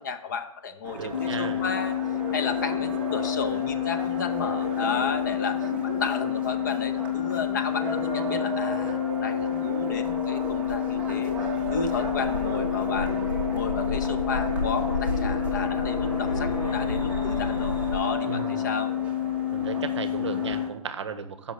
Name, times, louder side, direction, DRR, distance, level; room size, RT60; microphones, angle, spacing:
voice 1, 0.0-13.1 13.5-18.9, left 5 dB, 30° left, 8 dB, 0.6 m, -33 dB
sound 1, 0.8-20.7, right 3 dB, 5° right, 0.7 m, -35 dB
voice 2, 1.0-1.6 18.3-18.6 19.5-21.5, right 6 dB, 45° right, 11 dB, 0.8 m, -35 dB
sound 2, 1.1-20.7, left 12 dB, 65° left, 1.0 m, -29 dB
sound 3, 9.6-18.0, left 1 dB, 85° left, 2.0 m, -33 dB
6.2 x 5.4 x 6.7 m, 0.78 s
figure-of-eight pair, 145°, 20 cm